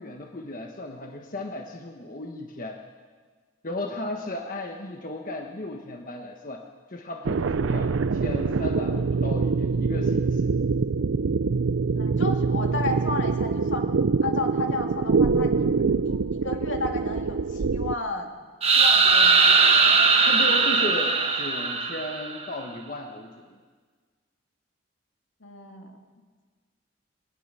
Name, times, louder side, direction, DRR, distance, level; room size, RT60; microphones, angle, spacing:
voice 1, 0.0-2.8 3.6-6.6 6.9-10.5 20.2-23.6, left 2 dB, 45° left, 2 dB, 1.2 m, -35 dB
sound 1, 7.3-17.9, right 4 dB, 85° right, 0.5 m, -24 dB
voice 2, 12.0-13.8 14.2-15.7 16.0-18.3 18.8-19.8 25.4-26.0, left 2 dB, 75° left, 3 dB, 2.3 m, -33 dB
sound 2, 18.6-22.4, right 4 dB, 30° right, 1.3 m, -19 dB
21.5 x 18.0 x 6.8 m, 1.5 s
head